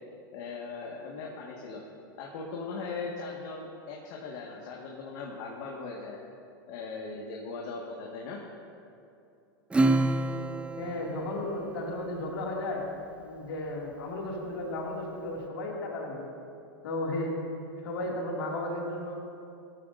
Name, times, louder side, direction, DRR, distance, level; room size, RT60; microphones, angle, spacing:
voice 1, 0.3-1.8 2.2-6.2 6.7-8.4, left 4 dB, 60° left, -2 dB, 1.8 m, -39 dB
Acoustic guitar / Strum, 9.7-12.6, right 2 dB, 10° right, 0.5 m, -29 dB
voice 2, 10.8-12.8 13.2-16.3 16.8-17.4 17.8-19.2, left 1 dB, 80° left, -2 dB, 2.5 m, -34 dB
17.5 x 13.5 x 2.7 m, 2.6 s
hypercardioid pair, 110°, 12 cm